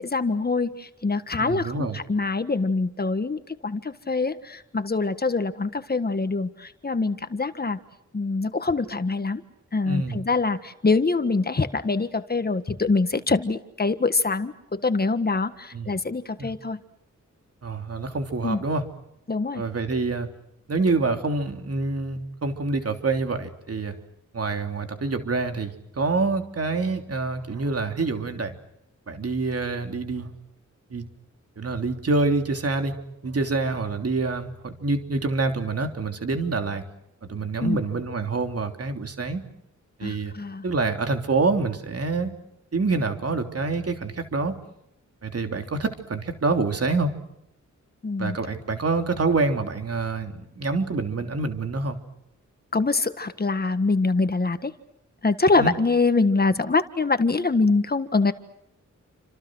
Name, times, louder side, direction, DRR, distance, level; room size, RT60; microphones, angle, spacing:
voice 1, 0.0-7.8 8.1-9.4 9.7-16.8 18.4-18.6 19.3-19.6 37.6-37.8 40.0-40.7 48.0-48.4 52.7-54.7 55.2-58.3, left 3 dB, 30° left, 11 dB, 1.6 m, -24 dB
voice 2, 1.4-2.0 9.8-10.2 15.7-15.9 16.4-16.5 17.6-18.8 19.5-20.3 20.7-23.9 24.3-28.5 29.1-30.3 30.9-31.1 31.6-33.0 33.2-36.8 37.2-39.4 40.0-40.3 40.6-42.3 42.7-44.6 45.2-47.1 48.2-52.0 55.6-55.7, right 3 dB, 50° right, 6 dB, 3.3 m, -26 dB
29.5 x 26.5 x 6.3 m, 0.78 s
wide cardioid pair, 160°, 30 cm